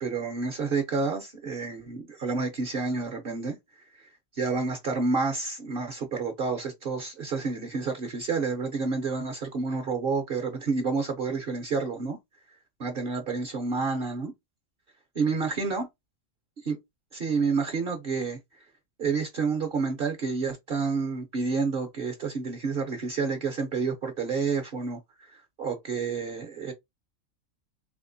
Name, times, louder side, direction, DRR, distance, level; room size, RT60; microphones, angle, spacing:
voice 1, 0.0-3.6 4.0-12.2 12.8-14.3 15.2-15.9 16.6-16.8 17.1-18.4 19.0-26.7, right 4 dB, 50° right, 0.8 m, -29 dB
3.5 x 3.0 x 2.6 m
omnidirectional pair, 1.4 m